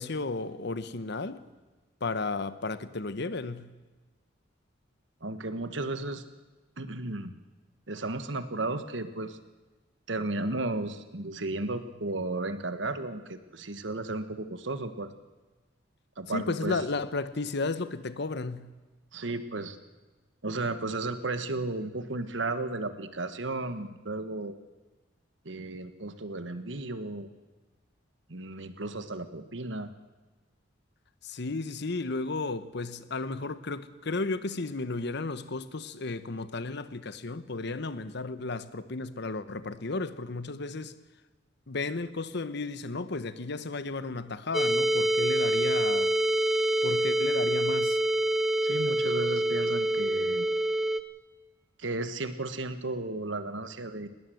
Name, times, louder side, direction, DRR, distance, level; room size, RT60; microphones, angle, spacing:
voice 1, 0.0-1.4 2.0-3.7 16.3-18.7 31.2-40.9 41.7-46.1 46.8-48.0, left 3 dB, 65° left, 1.0 m, -33 dB
voice 2, 5.2-6.2 6.8-7.3 7.9-9.4 10.1-15.1 16.2-16.8 19.1-19.8 20.4-24.5 25.4-27.3 28.3-29.9 48.6-50.5 51.8-54.1, right 2 dB, 70° right, 1.4 m, -34 dB
sound 1, 44.5-51.0, right 1 dB, ahead, 0.8 m, -26 dB
20.0 x 18.0 x 7.8 m
head